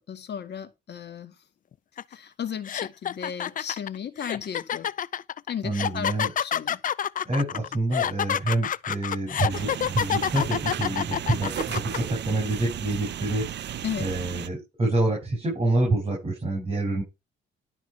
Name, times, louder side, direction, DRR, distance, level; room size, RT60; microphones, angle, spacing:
voice 1, 0.1-1.4 2.1-4.9 5.5-6.8 13.8-14.1, left 8 dB, 60° left, 2.0 m, -35 dB
sound 1, 2.0-2.1 2.6-12.0, left 9 dB, 45° left, 0.4 m, -28 dB
voice 2, 5.6-6.3 7.2-13.5 14.0-17.0, right 2 dB, 30° right, 6.0 m, -27 dB
sound 2, 9.5-14.5, right 10 dB, 60° right, 0.8 m, -34 dB
12.0 x 4.4 x 5.7 m
cardioid pair, 90°, 20 cm